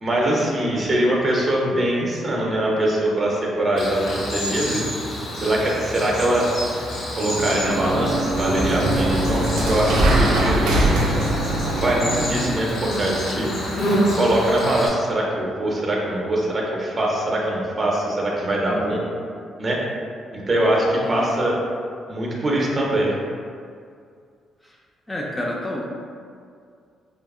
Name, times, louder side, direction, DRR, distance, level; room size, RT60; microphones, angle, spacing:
voice 1, 0.0-4.8 5.3-6.5 7.2-10.8 11.7-13.5 14.2-19.0 19.6-19.8 20.3-21.5 22.1-23.1, right 1 dB, 35° right, -2 dB, 0.5 m, -22 dB
Cricket, 3.8-14.9, equal, 65° left, 0.7 m, -28 dB
sound 1, 7.1-12.7, right 1 dB, 85° right, 0.4 m, -22 dB
voice 2, 18.7-19.1 21.1-21.3 24.6-24.8 25.1-25.8, left 1 dB, 15° left, -3 dB, 0.3 m, -29 dB
2.7 x 2.3 x 2.3 m, 2.2 s
cardioid pair, 90°, 0 cm